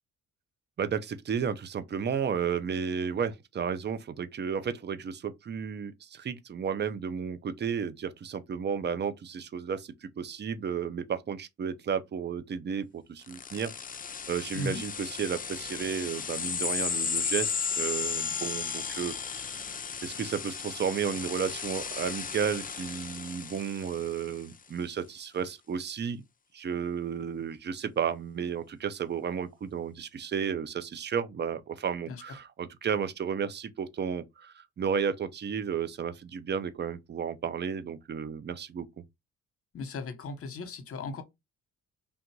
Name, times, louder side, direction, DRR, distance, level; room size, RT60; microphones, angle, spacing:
voice 1, 0.8-13.7 14.3-26.2 26.5-38.9, right 7 dB, 35° right, 0.6 m, -33 dB
sound 1, 13.3-24.4, left 6 dB, 30° left, 0.6 m, -35 dB
voice 2, 39.7-41.2, left 3 dB, 50° left, 1.1 m, -36 dB
3.5 x 2.5 x 4.6 m
cardioid pair, 90°, 30 cm